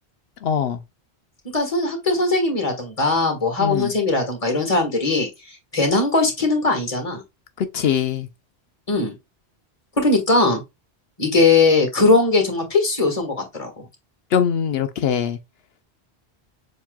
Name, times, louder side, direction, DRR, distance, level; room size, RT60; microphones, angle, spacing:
voice 1, 0.4-0.8 3.6-3.9 7.6-8.3 14.3-15.4, left 8 dB, 70° left, 0.8 m, -22 dB
voice 2, 1.5-7.2 8.9-9.1 10.0-10.6 11.2-13.8, left 3 dB, 35° left, 1.8 m, -20 dB
7.1 x 3.0 x 2.3 m
omnidirectional pair, 1.1 m